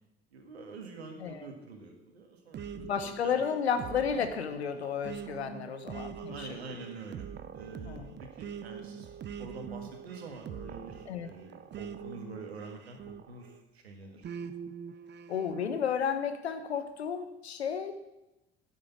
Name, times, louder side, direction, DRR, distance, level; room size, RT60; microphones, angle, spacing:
voice 1, 0.3-3.4 5.5-5.7 6.1-7.3 7.5-9.1 9.4-14.3, right 3 dB, 80° right, 4 dB, 1.6 m, -46 dB
sound 1, 2.5-13.6 14.2-15.8, right 7 dB, 35° right, 0.7 m, -44 dB
voice 2, 2.8-6.5 7.8-8.1 11.1-11.3 15.3-17.9, left 7 dB, 85° left, 9 dB, 1.0 m, -32 dB
10.5 x 6.3 x 7.2 m, 0.94 s
figure-of-eight pair, 55°, 32 cm